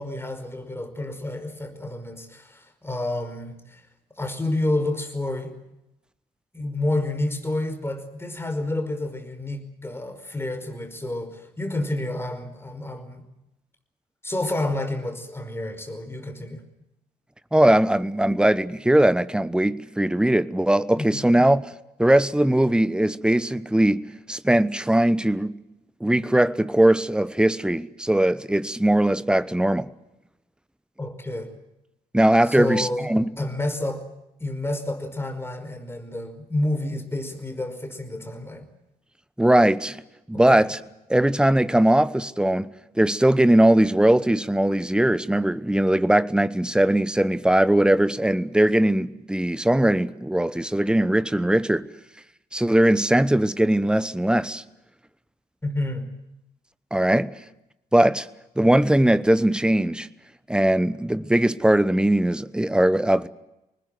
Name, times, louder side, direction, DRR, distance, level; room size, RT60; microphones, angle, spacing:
voice 1, 0.0-3.8 4.2-5.5 6.5-13.2 14.2-16.6 21.0-21.2 31.0-31.5 32.5-33.1 33.4-34.1 34.4-38.6 40.3-40.6 55.6-56.1, left 1 dB, 10° left, 5.2 m, -29 dB
voice 2, 17.5-21.6 22.0-25.6 26.0-29.9 32.1-33.2 39.4-40.0 40.3-40.8 41.1-51.9 52.5-54.6 56.9-57.3 57.9-58.3 58.6-60.1 60.5-63.3, right 1 dB, 5° right, 1.0 m, -20 dB
26.5 x 20.0 x 7.7 m
figure-of-eight pair, 50°, 20 cm